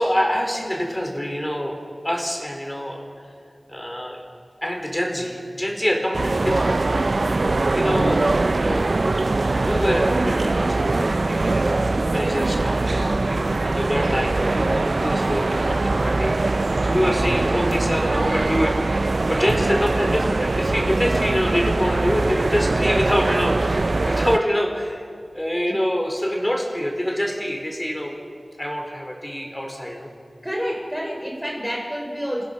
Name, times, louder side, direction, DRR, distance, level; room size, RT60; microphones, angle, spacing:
voice 1, 0.0-1.8 2.0-3.0 3.7-4.2 4.6-7.3 7.7-8.9 9.4-25.1 25.3-28.2 28.6-30.1, equal, 20° left, 1 dB, 4.3 m, -26 dB
sound 1, 6.1-24.4, right 2 dB, 70° right, 0.4 m, -22 dB
voice 2, 30.4-32.4, equal, 5° right, 0 dB, 3.4 m, -28 dB
28.5 x 17.0 x 5.8 m, 2.3 s
wide cardioid pair, 45°, 0 cm